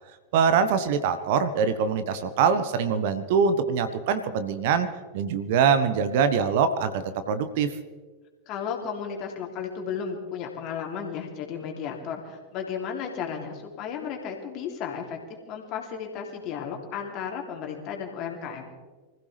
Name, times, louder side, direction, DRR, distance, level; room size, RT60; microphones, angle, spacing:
voice 1, 0.3-4.9 5.1-7.7, right 6 dB, 50° right, 12 dB, 1.1 m, -23 dB
voice 2, 8.5-15.2 15.5-18.7, left 7 dB, 40° left, 2 dB, 3.0 m, -34 dB
25.5 x 15.5 x 3.4 m, 1.4 s
figure-of-eight pair, 90°, 0 cm